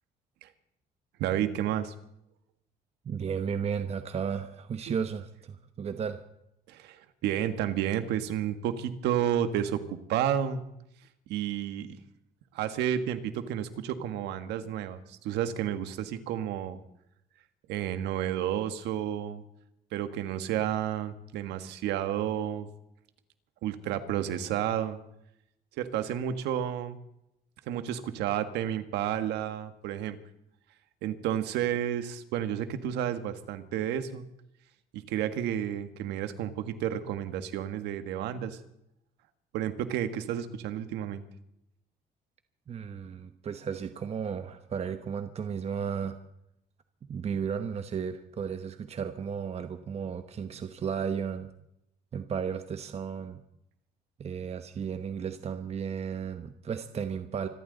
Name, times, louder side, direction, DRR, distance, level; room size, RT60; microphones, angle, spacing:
voice 1, 1.2-1.9 4.9-5.0 6.7-10.6 11.3-12.0 12.5-16.8 17.7-19.4 19.9-22.7 23.6-25.0 25.8-27.0 27.7-30.2 31.0-34.3 34.9-38.6 39.5-41.2, right 10 dB, 85° right, 10 dB, 1.5 m, -31 dB
voice 2, 3.0-6.2 42.7-46.2 47.1-51.5 52.1-53.4 54.2-57.5, right 7 dB, 40° right, 9 dB, 1.0 m, -34 dB
26.0 x 13.0 x 4.0 m, 0.80 s
cardioid pair, 110°, 17 cm